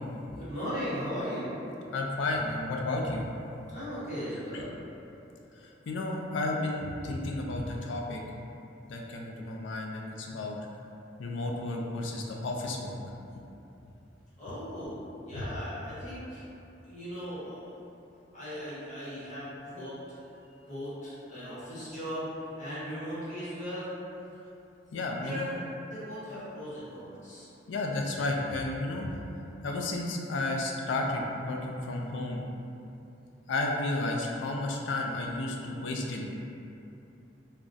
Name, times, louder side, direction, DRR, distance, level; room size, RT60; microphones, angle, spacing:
voice 1, 0.3-1.6 3.7-4.7 14.4-16.4 16.8-17.8 18.3-20.0 20.7-22.3 22.6-23.9 25.1-27.5, equal, 45° left, -11 dB, 1.1 m, -38 dB
voice 2, 1.9-3.3 5.6-8.2 8.9-10.6 11.2-13.0 24.9-25.5 27.7-29.1 29.6-32.5 33.5-36.5, left 2 dB, 75° left, 0 dB, 0.4 m, -32 dB
2.4 x 2.2 x 3.8 m, 2.8 s
head